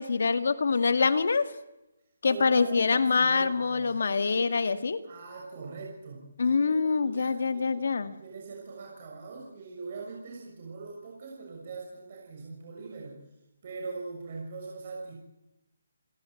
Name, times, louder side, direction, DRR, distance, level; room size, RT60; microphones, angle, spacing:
voice 1, 0.0-1.5 2.2-5.0 6.4-8.1, left 4 dB, 65° left, 10 dB, 2.1 m, -25 dB
voice 2, 2.2-3.9 5.0-13.2 13.6-15.1, right 4 dB, 40° right, -1 dB, 6.4 m, -42 dB
30.0 x 17.5 x 7.9 m, 0.93 s
hypercardioid pair, 165°, 0 cm